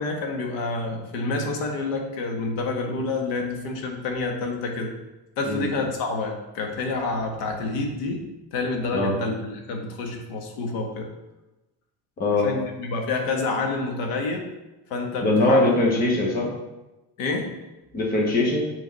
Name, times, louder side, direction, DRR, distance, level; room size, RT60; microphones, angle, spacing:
voice 1, 0.0-4.9 5.4-11.1 12.3-14.4 14.9-15.7 17.2-17.5, left 3 dB, 70° left, 3 dB, 1.5 m, -28 dB
voice 2, 15.2-16.5 17.9-18.7, left 2 dB, 20° left, -1 dB, 1.1 m, -21 dB
8.0 x 3.9 x 5.3 m, 1.0 s
cardioid pair, 180°, 45 cm